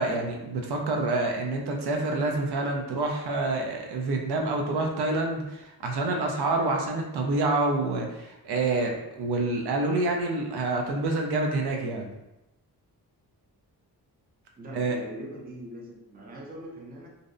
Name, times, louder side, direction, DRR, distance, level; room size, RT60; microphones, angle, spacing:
voice 1, 0.0-12.1 14.7-15.0, right 2 dB, 80° right, 1 dB, 0.5 m, -27 dB
voice 2, 14.6-17.1, right 1 dB, 25° right, -2 dB, 0.4 m, -41 dB
2.6 x 2.0 x 2.4 m, 0.94 s
wide cardioid pair, 135°, 39 cm